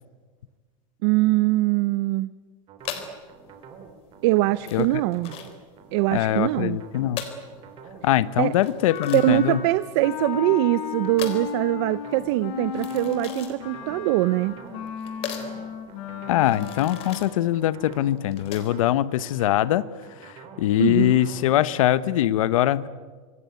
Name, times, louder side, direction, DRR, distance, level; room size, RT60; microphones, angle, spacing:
voice 1, 1.0-2.3 4.2-5.3 5.9-6.8 8.4-8.5 9.1-14.6 20.8-21.2, right 18 dB, 50° right, 16 dB, 0.7 m, -22 dB
sound 1, 2.7-22.0, right 6 dB, 30° right, 3.3 m, -46 dB
sound 2, 2.8-18.9, left 8 dB, 35° left, 3.6 m, -40 dB
voice 2, 6.1-7.2 8.0-9.6 16.3-19.8 20.2-22.9, left 13 dB, 80° left, 16 dB, 1.0 m, -22 dB
Wind instrument woodwind instrument, 8.9-17.5, left 8 dB, 55° left, 5.2 m, -35 dB
25.5 x 21.0 x 9.4 m, 1.4 s
supercardioid pair, 165°, 17 cm